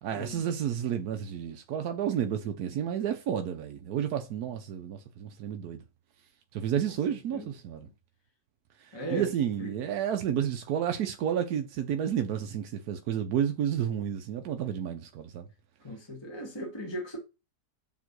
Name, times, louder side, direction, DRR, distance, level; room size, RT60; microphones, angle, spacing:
voice 1, 0.0-5.8 6.5-7.9 9.1-15.4, right 9 dB, 75° right, 1.2 m, -31 dB
voice 2, 8.9-9.3 9.6-9.7 15.8-17.2, right 1 dB, 15° left, 1.8 m, -37 dB
7.3 x 3.7 x 6.0 m
omnidirectional pair, 1.7 m